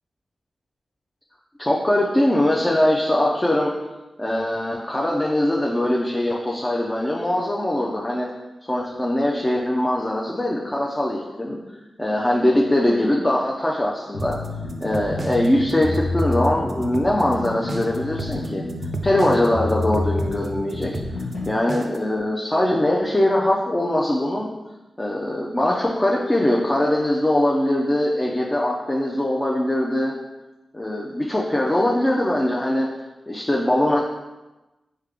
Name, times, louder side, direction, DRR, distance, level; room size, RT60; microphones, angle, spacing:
voice 1, 1.6-3.7 4.2-8.3 8.6-11.6 12.0-14.4 14.8-18.6 19.0-21.0 21.5-24.5 25.0-30.1 30.7-32.9 33.3-34.0, left 1 dB, 20° left, -3 dB, 0.5 m, -21 dB
sound 1, 14.1-21.5, left 2 dB, 80° left, 1.1 m, -29 dB
sound 2, 14.2-22.1, right 3 dB, 60° right, 0.3 m, -34 dB
3.5 x 3.3 x 3.5 m, 1.1 s
cardioid pair, 50°, 0 cm